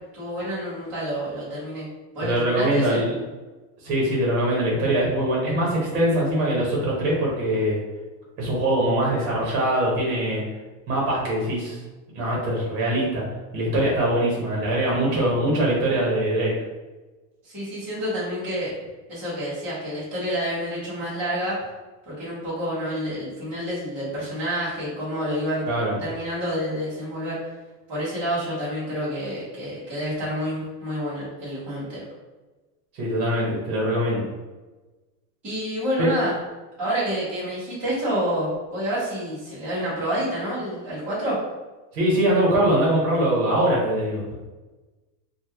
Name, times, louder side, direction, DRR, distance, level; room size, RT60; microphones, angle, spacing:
voice 1, 0.0-1.9 2.1-3.0 17.4-18.7 19.1-21.6 22.1-25.6 26.0-27.4 27.9-32.0 35.4-36.4 36.8-41.4, equal, 5° right, -14 dB, 0.4 m, -28 dB
voice 2, 2.2-3.1 3.8-7.8 8.4-10.4 10.9-11.8 12.1-13.2 13.5-16.5 25.6-26.0 32.9-34.2 36.0-36.1 41.9-44.2, right 1 dB, 35° right, -4 dB, 0.9 m, -22 dB
3.0 x 2.2 x 3.3 m, 1.2 s
supercardioid pair, 175°, 48 cm